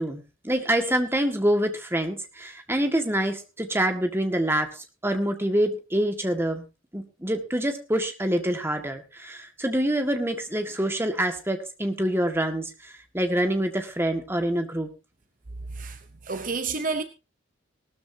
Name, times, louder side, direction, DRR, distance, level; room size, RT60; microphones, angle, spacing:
voice 1, 0.0-6.6 6.9-14.9, right 1 dB, 10° right, 1.8 m, -26 dB
voice 2, 15.7-17.0, right 4 dB, 40° right, 0.7 m, -30 dB
18.5 x 13.0 x 2.8 m
head